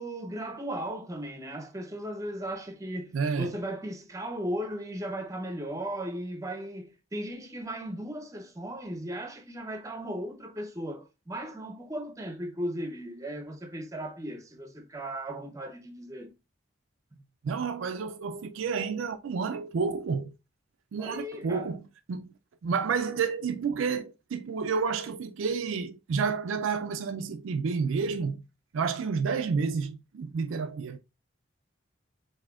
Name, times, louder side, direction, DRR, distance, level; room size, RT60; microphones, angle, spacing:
voice 1, 0.0-16.3 17.1-17.2 21.0-21.7, right 1 dB, 15° right, 0.6 m, -36 dB
voice 2, 3.1-3.6 17.4-20.3 20.9-21.8 22.1-22.3 22.6-28.4 28.7-31.0, right 5 dB, 80° right, 0.4 m, -30 dB
7.4 x 2.7 x 2.3 m
head